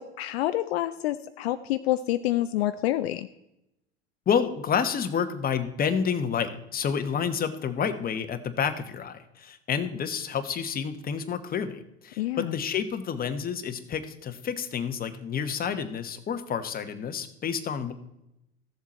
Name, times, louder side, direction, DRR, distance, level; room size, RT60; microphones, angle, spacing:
voice 1, 0.0-3.3 12.2-12.5, left 14 dB, 65° left, 11 dB, 0.6 m, -27 dB
voice 2, 4.3-17.9, left 7 dB, 25° left, 9 dB, 1.1 m, -29 dB
14.5 x 7.3 x 4.2 m, 0.86 s
hypercardioid pair, 80°, 33 cm